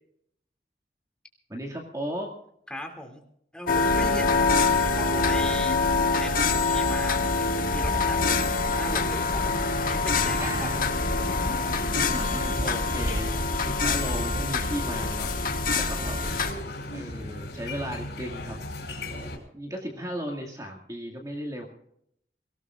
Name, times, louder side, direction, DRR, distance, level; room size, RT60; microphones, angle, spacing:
voice 1, 1.5-2.3 10.4-10.9 11.7-11.8 12.1-15.4 15.6-16.2 16.9-18.6 19.5-21.7, equal, 20° right, 1 dB, 2.1 m, -36 dB
voice 2, 2.7-3.2 3.5-4.6 5.0-9.4 9.8-10.7 19.3-19.5, left 1 dB, 5° left, 3 dB, 2.7 m, -38 dB
sound 1, 3.7-16.5, left 3 dB, 50° left, 1.6 m, -25 dB
sound 2, 9.0-19.4, left 1 dB, 80° left, 5.1 m, -37 dB
24.5 x 18.0 x 2.5 m, 0.71 s
head